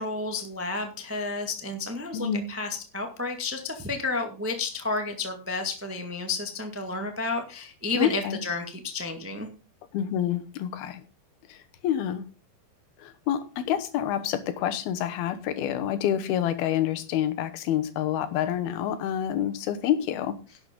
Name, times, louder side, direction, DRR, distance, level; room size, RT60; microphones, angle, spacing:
voice 1, 0.0-9.5, left 3 dB, 15° right, 0.5 m, -31 dB
voice 2, 2.1-2.5 8.0-8.4 9.9-11.0 11.5-12.2 13.0-20.4, left 10 dB, 90° left, 3.1 m, -28 dB
11.5 x 8.0 x 5.2 m
omnidirectional pair, 4.2 m